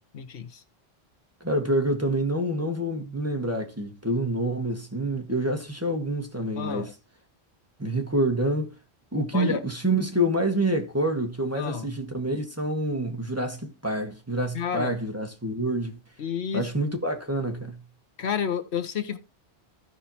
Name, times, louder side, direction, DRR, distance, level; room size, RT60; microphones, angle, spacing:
voice 1, 0.1-0.6 6.6-6.9 9.3-9.6 11.5-11.9 14.5-14.9 16.2-16.7 18.2-19.2, left 7 dB, 80° left, 1.3 m, -30 dB
voice 2, 1.4-6.9 7.8-8.7 9.1-16.0 16.5-17.8, right 1 dB, 15° right, 1.5 m, -27 dB
15.5 x 5.5 x 2.9 m
omnidirectional pair, 1.1 m